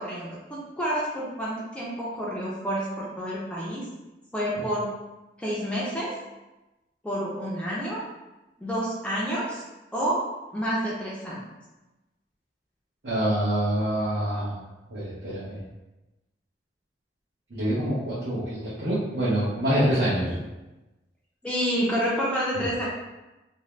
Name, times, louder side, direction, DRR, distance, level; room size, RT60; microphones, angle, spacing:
voice 1, 0.0-3.8 4.3-4.9 5.4-6.2 7.0-8.0 8.6-9.6 9.9-11.4 21.4-22.9, equal, 5° left, -6 dB, 0.4 m, -29 dB
voice 2, 13.0-14.5 14.9-15.6 17.5-20.3 22.5-22.6, right 1 dB, 75° right, -10 dB, 0.8 m, -26 dB
2.6 x 2.1 x 3.1 m, 1.0 s
head